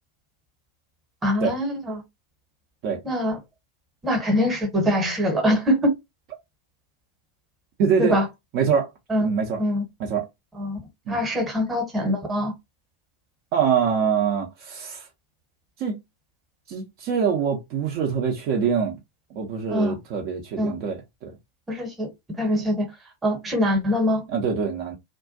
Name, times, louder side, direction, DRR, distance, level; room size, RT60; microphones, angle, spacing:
voice 1, 1.2-2.0 3.0-3.4 4.0-6.0 8.0-8.2 9.1-9.3 9.6-9.8 10.6-10.8 11.1-12.5 19.7-20.0 20.6-20.7 21.7-22.1 22.4-22.9 23.2-24.2, equal, 15° right, 1.0 m, -23 dB
voice 2, 7.8-8.2 8.5-8.9 9.2-9.6 10.0-10.3 11.1-11.2 13.5-15.1 15.8-16.0 16.7-19.0 19.3-21.3 24.3-25.0, right 6 dB, 45° right, 0.6 m, -24 dB
2.3 x 2.2 x 2.6 m
figure-of-eight pair, 90°, 0 cm